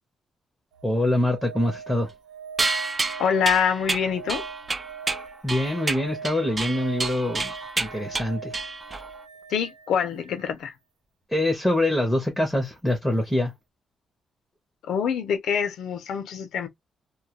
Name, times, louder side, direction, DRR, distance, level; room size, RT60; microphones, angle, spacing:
sound 1, 0.7-10.5 12.9-13.0, right 6 dB, 80° right, 0.7 m, -41 dB
voice 1, 0.8-2.1 5.4-8.6 11.3-13.5, left 1 dB, ahead, 0.7 m, -24 dB
sound 2, 2.6-9.2, right 3 dB, 20° right, 0.3 m, -29 dB
voice 2, 3.2-4.4 9.5-10.7 14.8-16.7, left 7 dB, 75° left, 0.5 m, -25 dB
2.2 x 2.2 x 2.8 m
wide cardioid pair, 170°, 0 cm